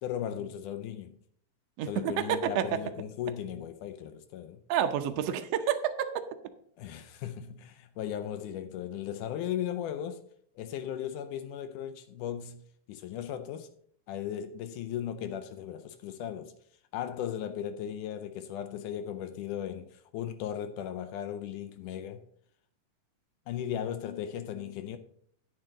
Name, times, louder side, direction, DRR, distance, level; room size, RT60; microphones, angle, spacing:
voice 1, 0.0-1.2 1.8-4.6 6.8-10.2 10.6-12.6 12.9-13.7 14.1-16.5 16.9-22.2 23.5-25.0, left 10 dB, 80° left, 2.1 m, -37 dB
voice 2, 1.8-2.8 4.7-6.2, right 9 dB, 80° right, 1.4 m, -29 dB
9.9 x 9.0 x 3.9 m
omnidirectional pair, 3.8 m